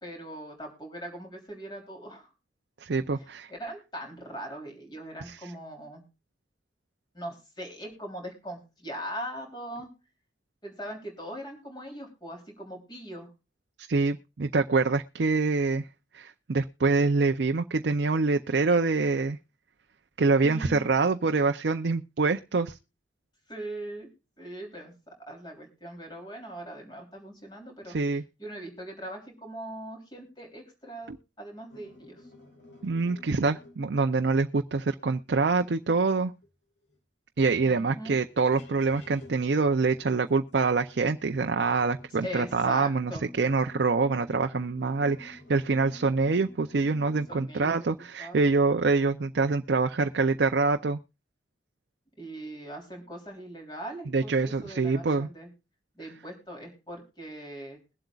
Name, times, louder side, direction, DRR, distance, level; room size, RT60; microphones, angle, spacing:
voice 1, 0.0-2.3 3.2-6.0 7.1-9.9 10.6-13.3 20.4-20.9 23.5-24.1 24.4-27.9 28.4-32.3 37.6-38.1 42.1-43.3 47.3-47.8 48.2-48.5 52.2-55.5 55.9-57.8, right 1 dB, 25° left, 2 dB, 3.3 m, -41 dB
voice 2, 2.8-3.5 5.3-5.4 13.9-15.9 16.1-19.4 20.2-22.8 27.9-28.2 31.1-31.2 32.8-36.3 37.4-43.1 43.4-51.0 54.1-55.3, right 4 dB, 60° right, 6 dB, 0.5 m, -25 dB
sound 1, 31.7-33.8 36.4-36.5 36.8-37.0 37.4-37.5 38.2-47.4, left 2 dB, 75° left, 4.3 m, -50 dB
22.0 x 7.8 x 2.4 m, 0.31 s
head